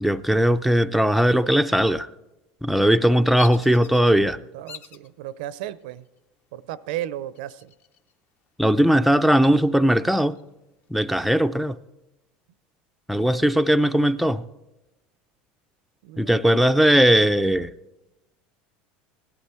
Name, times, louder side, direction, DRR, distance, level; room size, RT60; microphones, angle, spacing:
voice 1, 0.0-2.1 2.6-4.4 8.6-10.4 10.9-11.8 13.1-14.4 16.2-17.7, equal, ahead, 0.3 m, -19 dB
Bird vocalization bird call bird song, 3.4-4.1 4.7-5.1 5.7-6.2 7.3-8.1 8.5-8.6 9.0-10.4, left 7 dB, 45° left, 0.7 m, -44 dB
voice 2, 4.5-6.1 6.5-7.7 16.0-16.8, right 13 dB, 85° right, 0.5 m, -35 dB
17.0 x 11.5 x 4.4 m
supercardioid pair, 130°, 5 cm